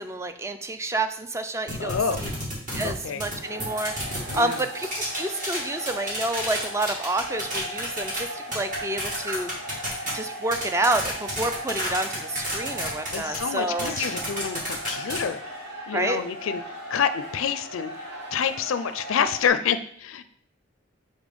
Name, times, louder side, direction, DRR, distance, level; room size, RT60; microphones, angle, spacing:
voice 1, 0.0-2.3 2.7-4.9 5.1-9.5 10.1-13.9 15.9-16.2, right 2 dB, 15° right, 8 dB, 0.4 m, -29 dB
sound 1, 1.7-3.3 3.6-8.2 8.5-15.2, right 1 dB, 40° right, 2.1 m, -31 dB
voice 2, 1.8-2.3 2.8-3.2 4.3-4.6 13.1-15.4 15.9-16.6 16.9-20.2, left 7 dB, 85° left, 11 dB, 0.4 m, -27 dB
sound 2, 3.4-19.5, equal, 55° right, 2.2 m, -38 dB
5.0 x 4.1 x 5.3 m, 0.62 s
head